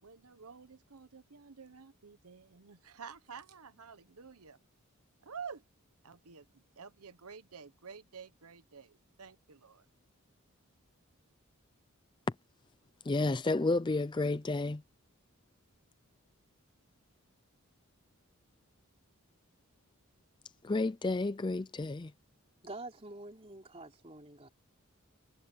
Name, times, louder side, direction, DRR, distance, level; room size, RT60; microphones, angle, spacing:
voice 1, 0.0-4.6 5.2-5.6 6.0-9.8, right 6 dB, 85° right, 1.0 m, -50 dB
voice 2, 13.0-14.8 20.6-22.1, left 2 dB, 20° left, 0.4 m, -31 dB
voice 3, 22.6-24.5, right 2 dB, 25° right, 3.3 m, -47 dB
head